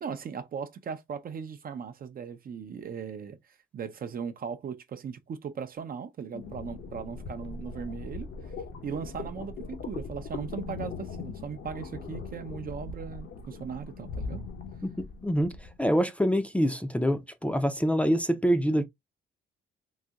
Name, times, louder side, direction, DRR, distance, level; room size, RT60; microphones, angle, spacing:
voice 1, 0.0-3.4 3.7-8.3 8.8-14.4, right 6 dB, 45° right, 0.5 m, -38 dB
sound 1, 6.3-15.8, left 4 dB, 65° left, 1.0 m, -40 dB
voice 2, 15.2-18.8, equal, 5° left, 0.5 m, -25 dB
4.0 x 2.7 x 2.3 m
cardioid pair, 100°, 21 cm